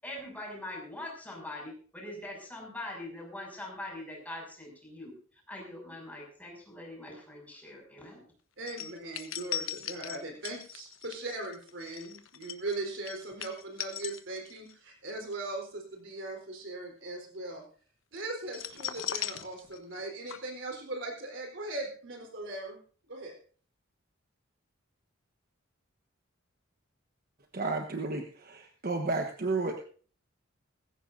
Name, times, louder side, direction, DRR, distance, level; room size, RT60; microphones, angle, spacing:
voice 1, 0.0-5.1 5.5-8.2, left 1 dB, 10° left, -1 dB, 6.6 m, -42 dB
voice 2, 8.6-17.6 18.1-22.8 23.1-23.3, right 2 dB, 65° right, 2 dB, 4.1 m, -39 dB
sound 1, 8.7-14.7 15.1-15.3 18.5-20.0 20.3-20.4, left 10 dB, 70° left, 1.1 m, -38 dB
voice 3, 27.5-29.8, right 3 dB, 45° right, 4 dB, 1.2 m, -32 dB
19.0 x 16.0 x 2.7 m, 0.42 s
head